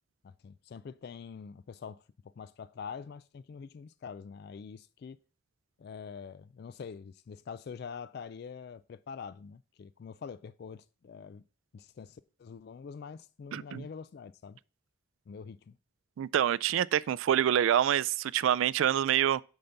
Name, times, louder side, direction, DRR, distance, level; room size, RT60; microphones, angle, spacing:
voice 1, 0.2-2.0 2.4-5.2 5.8-11.4 11.7-14.6 15.3-15.7, left 6 dB, 55° left, 0.3 m, -45 dB
voice 2, 13.5-13.9 16.2-19.4, right 10 dB, 80° right, 0.3 m, -26 dB
8.6 x 4.0 x 5.7 m
head